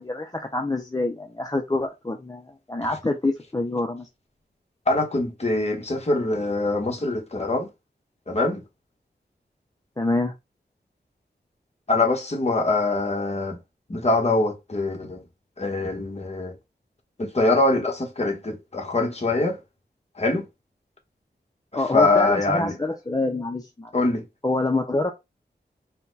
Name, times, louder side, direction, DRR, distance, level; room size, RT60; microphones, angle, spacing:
voice 1, 0.0-4.1 10.0-10.3 21.7-23.9 24.4-25.1, left 2 dB, 20° left, 0.6 m, -26 dB
voice 2, 4.9-7.7 8.3-8.6 11.9-13.6 13.9-15.2 15.6-16.6 17.2-19.6 20.2-20.5 21.7-22.7 23.9-24.2, left 2 dB, 35° left, 1.3 m, -23 dB
4.3 x 2.2 x 4.0 m
wide cardioid pair, 95°, 18 cm